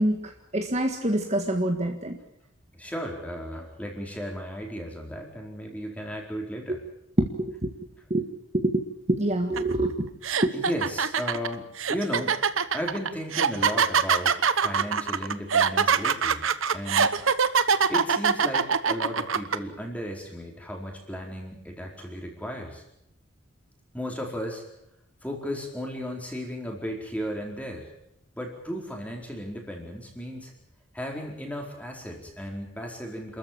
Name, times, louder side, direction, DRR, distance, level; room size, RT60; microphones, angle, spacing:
voice 1, 0.0-2.2 6.7-6.8 7.2-7.3 7.6-7.7 8.1-8.3 8.5-9.9 10.4-10.5, right 1 dB, 35° right, 3 dB, 1.8 m, -25 dB
voice 2, 2.8-6.8 10.5-12.4 12.7-16.5 16.7-17.2 17.9-22.8 23.9-24.6 25.2-27.9 28.4-30.5 30.9-33.4, equal, 5° left, 0 dB, 4.4 m, -35 dB
sound 1, 9.6-9.7 10.2-19.6, right 6 dB, 80° right, 1.1 m, -23 dB
28.0 x 14.0 x 8.8 m, 0.82 s
head